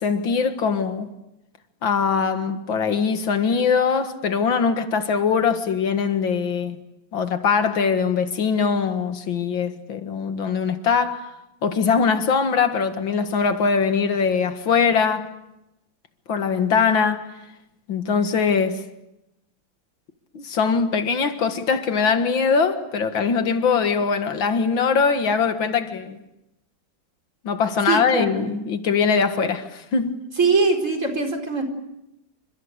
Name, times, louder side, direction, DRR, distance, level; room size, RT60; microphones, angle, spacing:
voice 1, 0.0-1.1 1.8-6.8 7.1-15.3 16.3-17.3 17.9-18.8 20.3-26.2 27.4-30.2, left 5 dB, 80° left, 2.4 m, -22 dB
voice 2, 27.9-28.3 30.4-31.6, right 4 dB, 40° right, 4.9 m, -21 dB
29.5 x 26.0 x 6.7 m
omnidirectional pair, 2.1 m